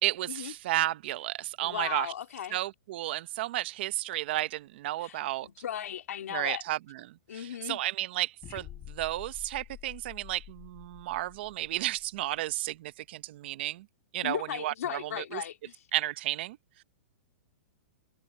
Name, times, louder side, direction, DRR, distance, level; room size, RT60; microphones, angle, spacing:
voice 1, 0.0-2.1 2.5-5.5 6.3-13.9 14.1-15.4 15.9-16.8, right 15 dB, 45° right, 0.8 m, -33 dB
voice 2, 1.6-2.6 5.0-6.6 7.3-7.8 14.2-15.8, left 10 dB, 75° left, 2.5 m, -37 dB
sound 1, 8.4-12.5, left 13 dB, 20° left, 5.1 m, -49 dB
hypercardioid pair, 165°, 8 cm